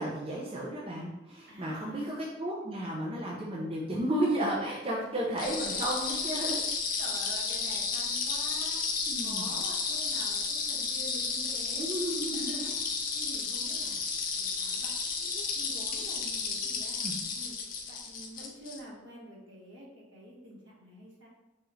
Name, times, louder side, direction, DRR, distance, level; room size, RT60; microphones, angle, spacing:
voice 1, 0.0-6.6 9.1-9.5 11.7-12.8 17.0-17.1, right 1 dB, 30° right, -4 dB, 0.5 m, -33 dB
voice 2, 1.5-2.1 5.1-5.2 7.0-8.8 9.1-11.8 12.3-12.7 13.1-14.0 14.3-17.0 17.3-17.6 17.9-21.3, right 1 dB, 65° right, -4 dB, 1.2 m, -47 dB
sound 1, 5.4-18.8, left 5 dB, 45° left, 0.5 m, -32 dB
4.7 x 2.5 x 3.0 m, 0.99 s
head